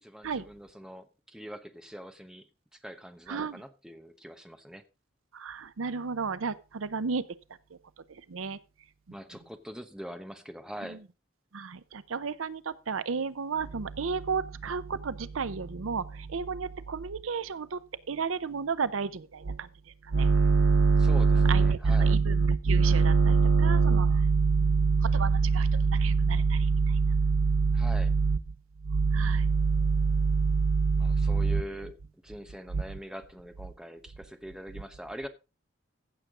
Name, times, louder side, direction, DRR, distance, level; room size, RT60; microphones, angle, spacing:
voice 1, 0.0-4.8 9.1-11.0 21.0-22.2 27.7-28.1 31.0-35.3, equal, 5° right, 0.9 m, -43 dB
voice 2, 3.3-3.6 5.3-7.2 8.1-8.6 10.9-11.0 11.5-17.8 18.1-19.7 20.0-28.4 28.8-31.6 32.7-32.8, right 4 dB, 85° right, 0.6 m, -26 dB
15.0 x 6.7 x 3.7 m
head